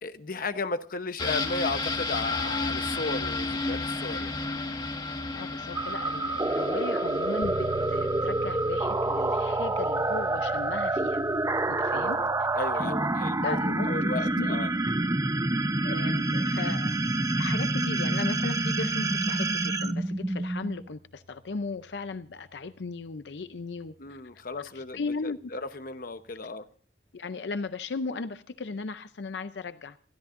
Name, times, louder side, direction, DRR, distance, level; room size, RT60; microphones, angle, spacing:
voice 1, 0.0-4.4 11.9-14.7 24.0-26.7, left 3 dB, 55° left, 1.0 m, -35 dB
sound 1, 1.2-10.8 11.1-11.2, left 3 dB, 25° left, 1.7 m, -34 dB
voice 2, 5.3-11.2 11.7-12.2 12.7-12.9 13.4-13.9 14.4-14.6 15.8-16.9 17.4-23.9 24.7-25.5 27.1-30.0, left 4 dB, 80° left, 0.6 m, -37 dB
sound 2, 5.7-20.9, right 2 dB, 20° right, 0.7 m, -27 dB
sound 3, 7.4-24.2, right 2 dB, 75° right, 1.5 m, -45 dB
28.5 x 13.0 x 2.5 m
head